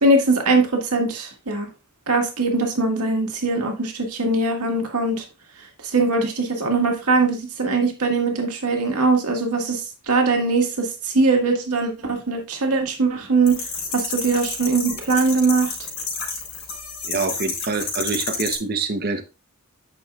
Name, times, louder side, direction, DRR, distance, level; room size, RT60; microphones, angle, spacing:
voice 1, 0.0-1.7 2.1-5.2 5.8-13.6 13.9-15.7, right 3 dB, 90° right, 1.8 m, -21 dB
sound 1, 13.5-18.5, left 5 dB, 60° left, 3.8 m, -30 dB
voice 2, 17.0-19.2, right 4 dB, 45° right, 0.9 m, -25 dB
9.2 x 6.1 x 2.4 m
head